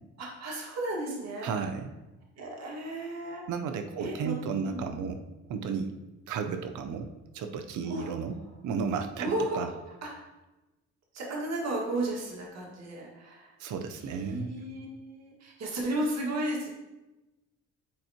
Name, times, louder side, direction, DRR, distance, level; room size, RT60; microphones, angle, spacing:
voice 1, 0.2-1.5 2.4-3.4 4.0-4.4 4.6-4.8 7.8-8.1 9.2-9.7 10.0-10.2 11.1-13.6 14.1-16.7, right 1 dB, 60° right, -2 dB, 1.8 m, -34 dB
voice 2, 1.4-1.9 3.5-5.2 5.5-5.9 6.3-7.1 7.3-8.4 8.6-9.7 13.6-14.5, right 6 dB, 75° right, 6 dB, 0.7 m, -33 dB
9.7 x 4.3 x 2.8 m, 1.0 s
cardioid pair, 90°, 30 cm